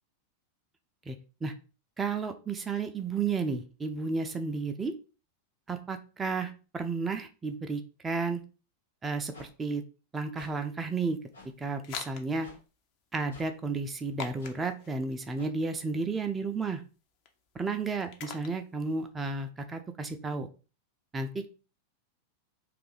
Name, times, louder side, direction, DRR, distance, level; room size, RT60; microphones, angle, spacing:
voice 1, 2.0-4.9 5.7-8.4 9.0-9.8 10.1-11.2 11.6-12.5 13.1-16.8 17.5-20.5 21.1-21.5, right 4 dB, 15° right, 6 dB, 0.4 m, -32 dB
sound 1, 9.3-9.5 10.4-10.5 11.3-11.5 12.4-12.6 13.3-13.5 14.4-14.5 15.3-15.5, left 3 dB, 75° left, 1.2 m, -51 dB
sound 2, 10.5-19.1, left 6 dB, 45° left, 0.5 m, -47 dB
2.7 x 2.5 x 3.8 m, 0.34 s
figure-of-eight pair, 90°, 0 cm